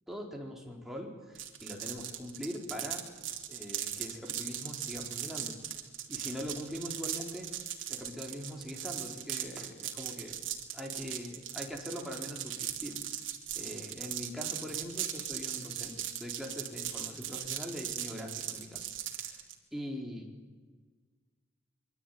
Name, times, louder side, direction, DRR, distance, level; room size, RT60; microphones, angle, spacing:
voice 1, 0.1-3.0 3.5-5.6 6.1-7.5 7.9-10.3 10.7-13.0 13.5-18.9 19.2-19.4 19.7-20.3, equal, ahead, 0 dB, 4.2 m, -42 dB
sound 1, 1.3-19.5, right 11 dB, 75° right, 3.1 m, -39 dB
25.0 x 23.5 x 9.4 m, 1.4 s
head